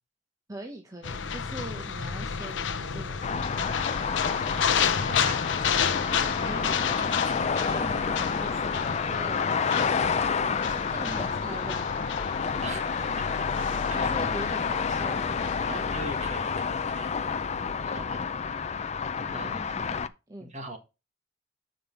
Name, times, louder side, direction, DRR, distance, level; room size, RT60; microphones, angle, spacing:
voice 1, 0.5-3.5 6.4-6.8 7.6-9.5 10.7-11.9 13.9-15.4 15.6-15.9 19.3-20.5, right 1 dB, 20° right, 0.9 m, -42 dB
sound 1, 1.0-16.3, left 7 dB, 80° left, 0.7 m, -31 dB
sound 2, 3.2-20.1, left 5 dB, 35° left, 0.5 m, -29 dB
voice 2, 4.1-4.8 5.1-5.4 6.4-6.6 6.9-7.7 12.6-12.9 13.2-14.1 15.7-17.1 17.8-18.2 19.3-19.9 20.5-20.8, right 2 dB, 40° right, 1.8 m, -42 dB
6.7 x 5.2 x 5.4 m
head